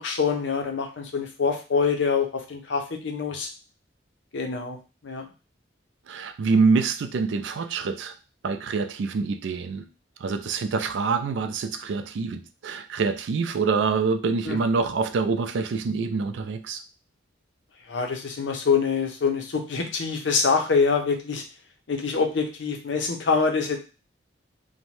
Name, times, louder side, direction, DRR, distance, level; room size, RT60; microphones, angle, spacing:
voice 1, 0.0-3.5 4.3-4.8 5.0-5.3 14.4-14.6 17.9-21.4 21.9-23.8, left 5 dB, 75° left, 4 dB, 0.6 m, -25 dB
voice 2, 6.1-8.1 8.4-9.9 10.2-16.8, right 4 dB, 70° right, 9 dB, 0.3 m, -25 dB
2.6 x 2.1 x 3.1 m, 0.32 s
head